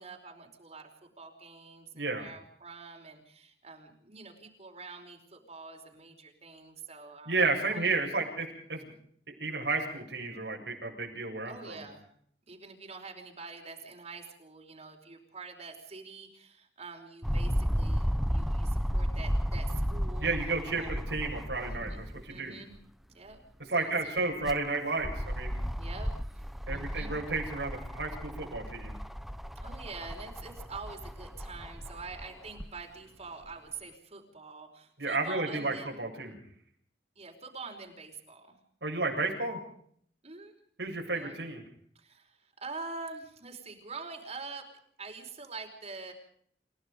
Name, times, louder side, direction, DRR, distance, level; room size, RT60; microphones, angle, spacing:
voice 1, 0.0-7.3 7.7-7.8 11.4-12.0 12.5-20.3 20.7-21.0 21.7-22.7 23.1-23.4 23.7-23.9 25.8-27.2 29.6-35.9 37.2-38.6 40.2-40.5 41.1-41.4 42.0-44.6 45.0-46.1, right 4 dB, 40° right, 3 dB, 4.8 m, -45 dB
voice 2, 1.9-2.3 7.3-8.9 9.4-11.8 20.2-22.6 23.7-25.6 26.7-28.9 35.0-36.4 38.8-39.6 40.8-41.6, right 3 dB, 80° right, 1 dB, 7.7 m, -32 dB
sound 1, 17.2-22.3 22.7-22.8 24.2-32.7 33.5-33.6, equal, ahead, 0.8 m, -33 dB
29.5 x 17.0 x 5.2 m, 0.63 s
head